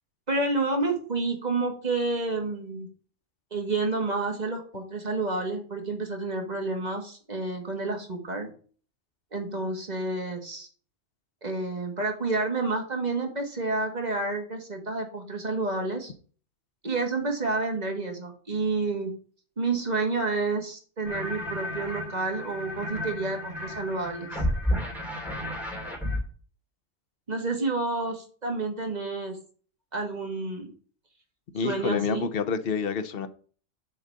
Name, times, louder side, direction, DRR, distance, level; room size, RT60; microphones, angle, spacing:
voice 1, 0.3-2.9 3.5-8.5 9.3-10.7 11.4-16.1 16.8-19.1 19.6-24.4 27.3-29.4 29.9-30.7 31.6-32.3, right 3 dB, 35° right, 1.8 m, -29 dB
sound 1, 21.0-26.2, left 1 dB, ahead, 2.4 m, -32 dB
voice 2, 31.5-33.3, left 6 dB, 55° left, 0.9 m, -28 dB
7.3 x 4.0 x 6.5 m
omnidirectional pair, 1.3 m